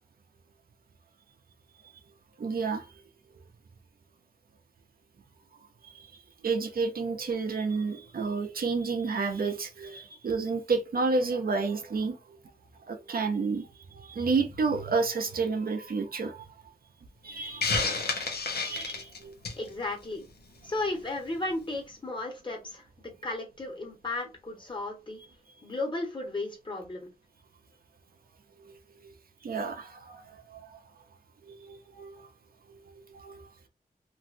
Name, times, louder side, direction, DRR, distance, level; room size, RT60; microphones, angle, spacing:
voice 1, 2.4-2.9 6.4-12.2 12.9-16.4 17.2-17.7 18.6-19.3 29.4-30.2 30.5-30.7 31.5-32.3 32.9-33.5, right 4 dB, 70° right, 0.6 m, -30 dB
Hiss, 17.6-19.7, left 4 dB, 90° left, 0.8 m, -30 dB
voice 2, 19.6-20.2 20.6-25.2 25.6-27.1, left 2 dB, 30° left, 1.3 m, -34 dB
3.0 x 2.6 x 2.6 m
wide cardioid pair, 100°, 16 cm